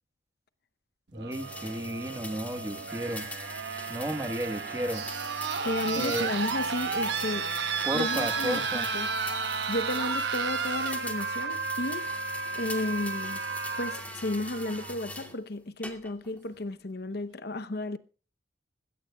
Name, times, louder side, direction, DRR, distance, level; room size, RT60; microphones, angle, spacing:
voice 1, 1.1-3.2 3.9-5.1 5.9-6.3 7.8-8.9, right 1 dB, 15° right, 1.3 m, -33 dB
sound 1, 1.1-15.1 16.4-16.5, right 5 dB, 65° right, 1.0 m, -33 dB
sound 2, 1.3-15.4 15.8-16.4, left 2 dB, 10° left, 2.2 m, -43 dB
voice 2, 5.6-7.5 7.9-9.1 9.7-12.1 12.5-13.4 13.8-18.0, left 1 dB, 55° left, 0.8 m, -33 dB
20.0 x 17.0 x 2.3 m
head